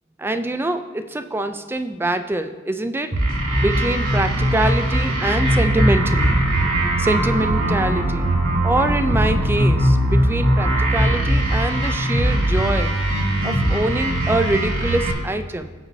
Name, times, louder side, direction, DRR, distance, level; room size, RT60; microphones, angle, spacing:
voice 1, 0.2-3.1 3.6-6.4 7.0-8.3 8.6-12.9 13.4-15.7, right 1 dB, 10° right, 9 dB, 0.4 m, -24 dB
sound 1, 3.1-15.1, right 1 dB, 75° right, 2.7 m, -20 dB
18.0 x 6.1 x 2.7 m, 1.4 s
head